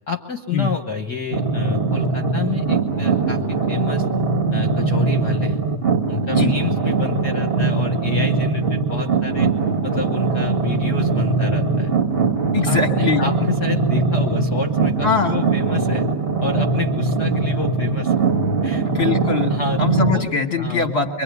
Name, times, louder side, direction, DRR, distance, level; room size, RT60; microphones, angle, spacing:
voice 1, 0.1-4.1 4.5-5.6 6.1-9.5 9.8-11.9 12.5-16.1 16.4-18.2 18.6-18.9 19.5-19.8 20.1-20.3 20.6-20.9, left 5 dB, 55° left, 5 dB, 1.2 m, -29 dB
sound 1, 1.3-20.1, right 4 dB, 70° right, 0.5 m, -21 dB
voice 2, 12.5-13.2 15.0-15.3 18.8-19.5 19.8-21.2, left 4 dB, 35° left, 4 dB, 1.1 m, -21 dB
24.5 x 24.0 x 9.6 m, 1.0 s
omnidirectional pair, 3.4 m